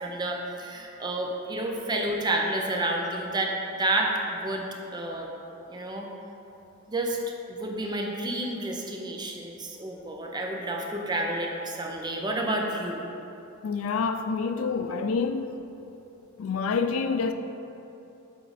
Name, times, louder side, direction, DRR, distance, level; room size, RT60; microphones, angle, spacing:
voice 1, 0.0-4.7 4.9-5.3 5.7-6.1 6.9-7.2 7.5-13.0, right 1 dB, 20° right, 0.6 m, -30 dB
voice 2, 13.6-15.6 16.4-17.3, left 5 dB, 75° left, 0.4 m, -27 dB
7.9 x 3.7 x 4.1 m
head